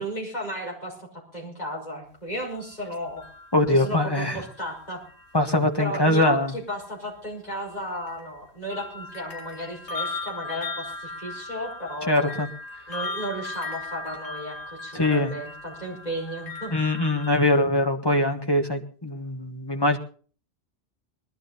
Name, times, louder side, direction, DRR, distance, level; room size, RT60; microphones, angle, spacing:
voice 1, 0.0-3.2 3.7-5.0 5.8-12.3 12.9-16.7, equal, 40° left, -2 dB, 6.0 m, -34 dB
sound 1, 2.6-5.7 6.7-6.8 7.6-17.5, left 2 dB, 85° left, 3.4 m, -38 dB
voice 2, 3.5-4.4 5.3-6.5 12.1-12.5 14.9-15.3 16.7-20.0, left 1 dB, 20° left, 4 dB, 1.6 m, -22 dB
20.5 x 12.0 x 4.1 m, 0.41 s
omnidirectional pair, 1.1 m